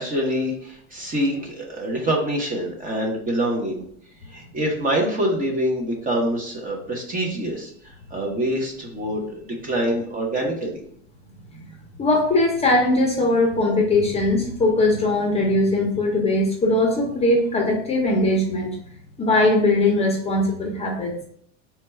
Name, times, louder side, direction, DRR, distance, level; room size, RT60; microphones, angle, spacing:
voice 1, 0.0-3.8 4.3-10.8, right 1 dB, 20° right, 0 dB, 0.7 m, -25 dB
voice 2, 12.0-18.7 19.2-21.1, left 2 dB, 15° left, 0 dB, 0.6 m, -20 dB
4.4 x 2.3 x 4.2 m, 0.63 s
supercardioid pair, 145°, 36 cm